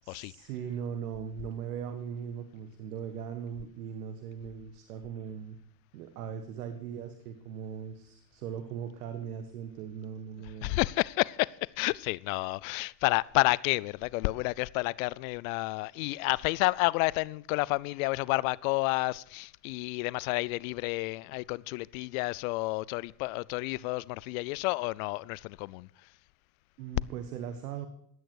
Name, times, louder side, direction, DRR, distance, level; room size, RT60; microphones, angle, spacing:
voice 1, 0.0-5.6 5.9-10.8 26.8-27.9, right 8 dB, 75° right, 1.6 m, -39 dB
voice 2, 10.6-25.9, left 23 dB, 60° left, 0.6 m, -30 dB
15.5 x 10.5 x 4.7 m
hypercardioid pair, 95°, 46 cm